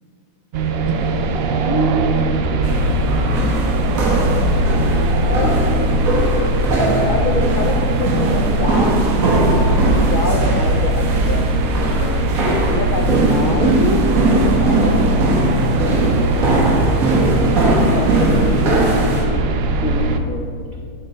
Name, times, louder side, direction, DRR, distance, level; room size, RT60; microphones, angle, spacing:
sound 1, 0.5-20.2, right 2 dB, 80° right, 0.5 m, -19 dB
voice 1, 1.6-2.2 5.2-6.0 7.0-9.3 9.8-14.0 14.6-15.1 16.4-17.2 17.9-19.2 19.8-20.7, left 2 dB, 80° left, 1 dB, 0.4 m, -26 dB
sound 2, 2.6-19.2, right 2 dB, 65° right, 1.5 m, -20 dB
10.5 x 4.0 x 4.3 m, 2.2 s
omnidirectional pair, 1.6 m